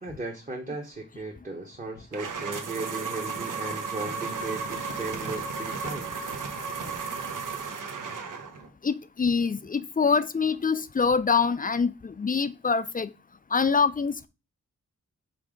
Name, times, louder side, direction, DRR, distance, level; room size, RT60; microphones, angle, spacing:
voice 1, 0.0-6.1, right 2 dB, 25° right, 1.2 m, -36 dB
sound 1, 2.1-8.7, right 5 dB, 90° right, 1.2 m, -34 dB
voice 2, 8.8-13.1 13.5-14.3, left 5 dB, 30° left, 0.4 m, -25 dB
5.8 x 3.4 x 5.0 m
wide cardioid pair, 100°, 31 cm